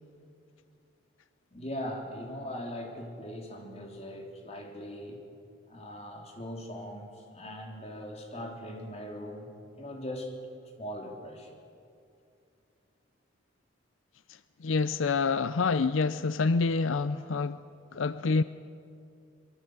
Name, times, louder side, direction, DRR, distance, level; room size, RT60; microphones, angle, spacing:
voice 1, 1.5-5.2 5.7-9.5 9.8-10.3 10.8-11.5, equal, 35° left, 3.5 m, -40 dB
voice 2, 14.6-17.6 17.9-18.4, left 4 dB, 85° left, 0.6 m, -27 dB
24.5 x 22.5 x 8.0 m
head